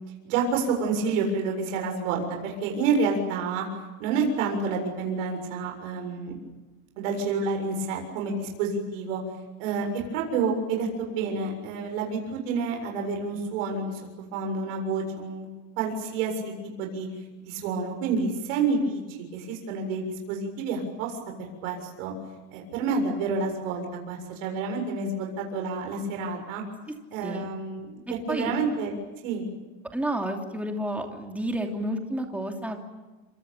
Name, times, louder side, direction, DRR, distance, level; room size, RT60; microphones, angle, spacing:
voice 1, 0.2-3.7 4.0-6.4 7.0-9.2 9.6-14.0 14.3-15.5 15.8-17.1 17.4-19.0 19.3-22.1 22.5-26.6 27.1-28.9 29.2-29.5, right 4 dB, 65° right, 2 dB, 7.2 m, -29 dB
voice 2, 27.2-27.5 28.3-28.6 29.9-32.8, right 1 dB, 5° right, 2 dB, 2.8 m, -30 dB
27.5 x 26.5 x 7.2 m, 1.2 s
supercardioid pair, 160°, 40 cm